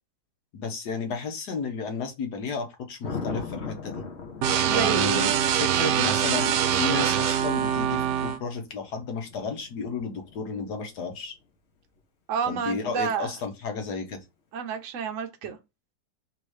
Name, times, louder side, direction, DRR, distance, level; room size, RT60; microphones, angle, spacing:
voice 1, 0.5-4.0 4.7-5.3 5.6-11.3 12.5-14.2, left 5 dB, 65° left, 1.5 m, -33 dB
Thunder, 3.0-11.1 13.8-14.1, left 5 dB, 50° left, 0.9 m, -40 dB
sound 1, 4.4-8.4, right 9 dB, 75° right, 1.2 m, -24 dB
voice 2, 4.6-5.3 12.3-13.3 14.5-15.6, right 7 dB, 55° right, 0.9 m, -30 dB
3.5 x 2.9 x 4.8 m
omnidirectional pair, 1.9 m